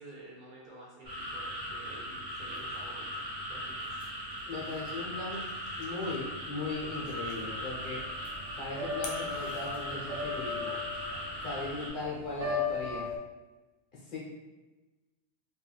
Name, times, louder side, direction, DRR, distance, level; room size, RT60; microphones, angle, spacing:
voice 1, 0.0-4.0 14.1-14.2, right 2 dB, 55° right, -5 dB, 0.7 m, -50 dB
sound 1, 1.0-11.9, equal, 25° right, 1.2 m, -39 dB
sound 2, 3.4-10.3, left 3 dB, 85° left, 0.9 m, -52 dB
voice 2, 4.5-5.4 5.8-8.0 8.6-10.7 11.4-13.1 14.0-14.2, left 3 dB, 50° left, -6 dB, 1.0 m, -38 dB
sound 3, 6.7-13.2, left 5 dB, 90° right, 1.1 m, -39 dB
3.4 x 2.6 x 2.3 m, 1.1 s
omnidirectional pair, 1.2 m